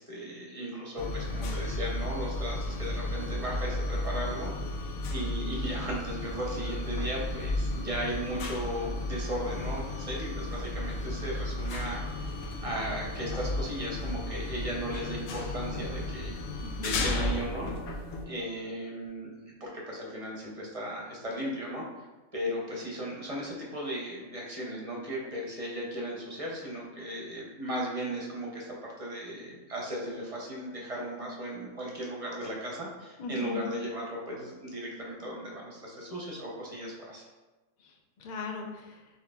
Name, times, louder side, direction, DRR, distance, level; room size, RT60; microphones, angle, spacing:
voice 1, 0.0-4.5 5.1-12.0 12.6-16.4 16.8-17.7 18.3-21.8 22.3-37.2, right 1 dB, 35° right, -3 dB, 0.6 m, -36 dB
sound 1, 1.0-18.3, left 2 dB, 85° left, 1.0 m, -34 dB
voice 2, 16.6-17.1 33.2-33.6 37.8-39.1, left 4 dB, 60° left, 2 dB, 0.4 m, -39 dB
7.0 x 2.9 x 2.3 m, 1.2 s
omnidirectional pair, 1.4 m